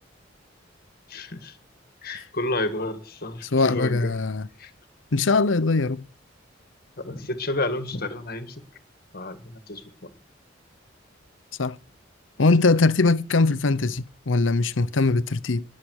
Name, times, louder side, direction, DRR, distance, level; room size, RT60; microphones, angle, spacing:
voice 1, 1.1-1.5 2.0-4.1 4.6-4.7 7.0-8.6 9.1-10.1, left 2 dB, 55° left, 1.8 m, -31 dB
voice 2, 3.4-4.5 5.1-6.0 11.6-11.8 12.4-15.6, left 3 dB, 85° left, 0.8 m, -21 dB
20.5 x 7.6 x 6.4 m
head